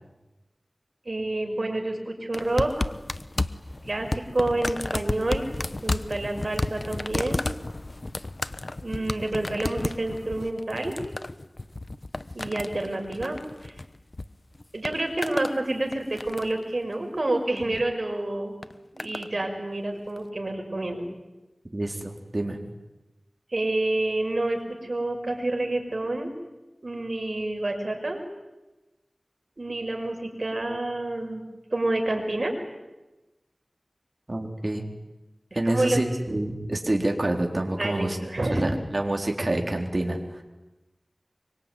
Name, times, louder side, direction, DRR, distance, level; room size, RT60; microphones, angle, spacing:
voice 1, 1.0-2.9 3.8-5.5 5.8-7.4 8.8-11.0 12.3-13.8 14.7-18.6 18.9-21.0 23.5-26.3 26.8-28.2 29.6-31.4 31.7-32.6 35.7-36.0 37.8-38.7, right 2 dB, 60° right, 3 dB, 6.1 m, -28 dB
sound 1, 2.3-14.3 14.6-15.6 15.9-16.6 17.6-17.9 18.6-19.3 20.2-20.3, left 2 dB, 50° left, 1.0 m, -32 dB
voice 2, 21.7-22.6 34.3-34.8 35.5-38.2 38.5-40.4, right 1 dB, 45° right, 2 dB, 4.2 m, -27 dB
25.5 x 24.5 x 9.5 m, 1.1 s
wide cardioid pair, 55°, 0 cm